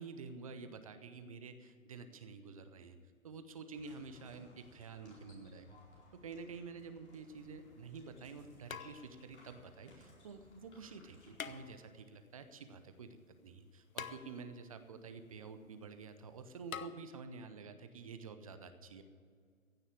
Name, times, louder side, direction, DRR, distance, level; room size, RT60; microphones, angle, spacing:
voice 1, 0.0-3.0 3.2-5.8 6.2-13.2 13.4-19.0, right 4 dB, 25° right, 9 dB, 0.6 m, -49 dB
sound 1, 3.7-12.0, left 1 dB, 50° left, 4.7 m, -62 dB
sound 2, 7.3-7.4 8.7-9.4 11.3-12.1 14.0-14.7 16.7-16.9, left 7 dB, 70° left, 0.8 m, -46 dB
15.5 x 6.9 x 8.4 m, 2.1 s
figure-of-eight pair, 135°, 42 cm